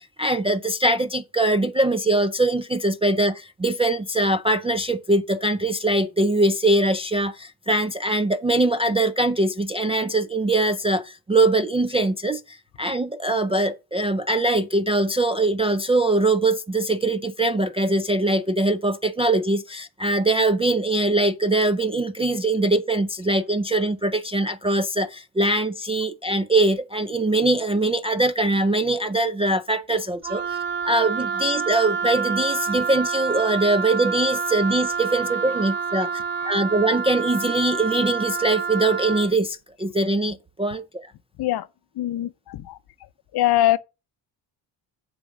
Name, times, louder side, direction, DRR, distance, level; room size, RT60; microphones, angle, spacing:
voice 1, 0.0-30.6 30.8-36.1 36.4-41.1, right 2 dB, 15° right, 0.3 m, -22 dB
Wind instrument woodwind instrument, 30.2-39.3, right 5 dB, 55° right, 0.9 m, -28 dB
voice 2, 42.0-42.8 43.3-43.8, left 14 dB, 50° left, 0.6 m, -22 dB
6.8 x 3.8 x 6.3 m
supercardioid pair, 80°, 49 cm